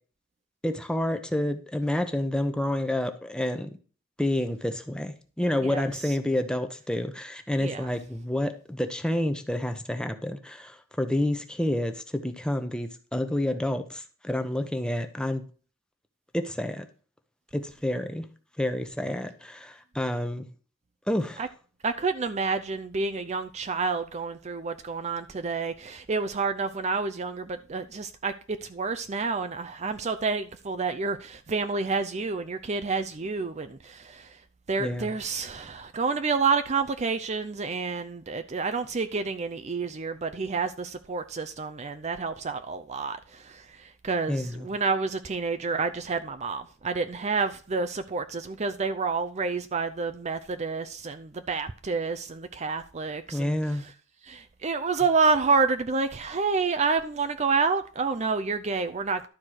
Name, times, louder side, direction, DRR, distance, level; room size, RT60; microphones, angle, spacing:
voice 1, 0.6-3.7 4.2-15.4 16.3-16.8 17.5-18.3 18.6-20.4 21.1-21.4 34.8-35.1 44.3-44.7 53.3-53.8, left 1 dB, 5° left, 0.9 m, -29 dB
voice 2, 21.8-34.3 34.7-43.6 44.0-53.6 54.3-59.3, right 4 dB, 35° right, 0.5 m, -29 dB
12.0 x 4.6 x 6.4 m
head